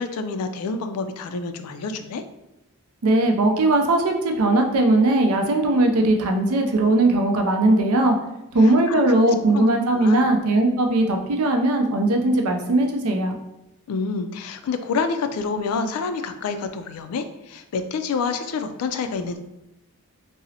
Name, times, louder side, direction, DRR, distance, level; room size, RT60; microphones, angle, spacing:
voice 1, 0.0-2.2 8.6-9.0 9.5-10.3 13.9-19.4, left 4 dB, 85° left, 9 dB, 0.3 m, -28 dB
voice 2, 3.0-8.2 8.5-13.3, right 2 dB, 80° right, 3 dB, 0.5 m, -19 dB
3.8 x 2.0 x 2.7 m, 0.91 s
head